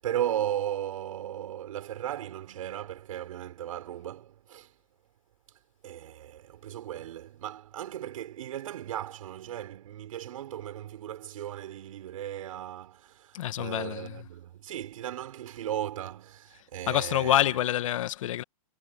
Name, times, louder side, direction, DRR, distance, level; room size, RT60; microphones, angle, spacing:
voice 1, 0.0-4.7 5.8-17.4, right 11 dB, 65° right, 6.9 m, -36 dB
voice 2, 13.3-14.3 16.9-18.4, left 12 dB, 60° left, 1.8 m, -27 dB
hypercardioid pair, 160°, 19 cm